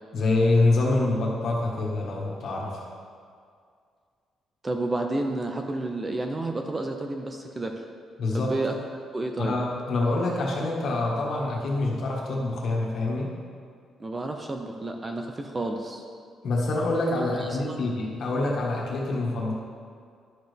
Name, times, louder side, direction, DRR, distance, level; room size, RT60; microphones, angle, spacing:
voice 1, 0.1-2.9 8.2-8.5 9.4-13.3 16.4-19.5, left 2 dB, 55° left, -3 dB, 1.6 m, -26 dB
voice 2, 4.6-7.8 8.3-8.7 9.1-9.6 14.0-16.0 17.4-17.8, right 2 dB, 20° right, 3 dB, 0.5 m, -31 dB
11.5 x 6.4 x 3.4 m, 2.2 s
cardioid pair, 160°, 0 cm